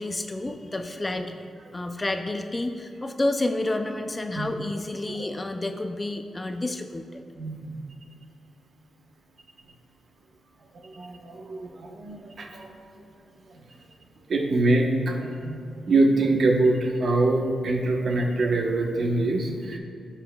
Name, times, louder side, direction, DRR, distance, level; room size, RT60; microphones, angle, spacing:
voice 1, 0.0-1.4 1.7-7.2, left 2 dB, 25° left, 6 dB, 0.5 m, -30 dB
voice 2, 7.4-7.7 10.8-12.7 14.3-15.6 15.9-19.8, right 2 dB, 65° right, 1 dB, 1.0 m, -24 dB
16.0 x 5.8 x 2.3 m, 2.2 s
cardioid pair, 90°, 0 cm